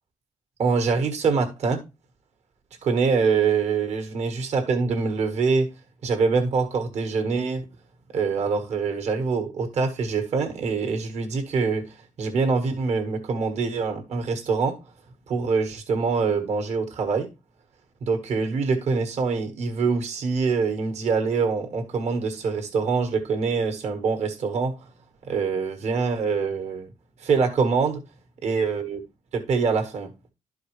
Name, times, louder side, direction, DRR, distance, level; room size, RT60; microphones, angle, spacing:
voice 1, 0.6-1.8 2.8-5.7 6.0-7.7 8.1-14.8 15.3-17.3 18.0-24.7 25.2-26.9 27.2-28.0 28.4-29.0 29.3-30.1, right 5 dB, 60° right, 1.5 m, -24 dB
12.0 x 4.6 x 3.2 m
cardioid pair, 145°, 13 cm